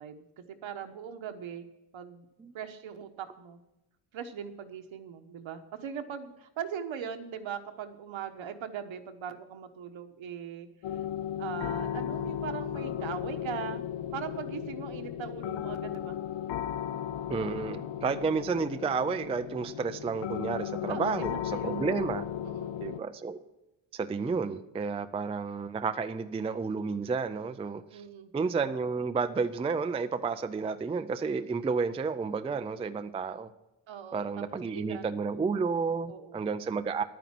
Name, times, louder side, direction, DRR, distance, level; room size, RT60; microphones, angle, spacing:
voice 1, 0.0-1.7 1.9-2.3 2.5-3.6 4.1-10.7 11.4-13.8 14.1-16.2 20.9-22.0 22.4-22.7 27.9-28.3 33.9-35.1 36.1-36.4, right 8 dB, 70° right, 7 dB, 1.3 m, -40 dB
sound 1, 10.8-23.0, left 10 dB, 65° left, 0.6 m, -35 dB
voice 2, 17.3-22.3 22.8-23.4 23.9-28.0 28.3-33.5 34.1-37.0, right 5 dB, 15° right, 11 dB, 0.3 m, -31 dB
11.0 x 9.3 x 5.9 m, 0.96 s
wide cardioid pair, 170°, 47 cm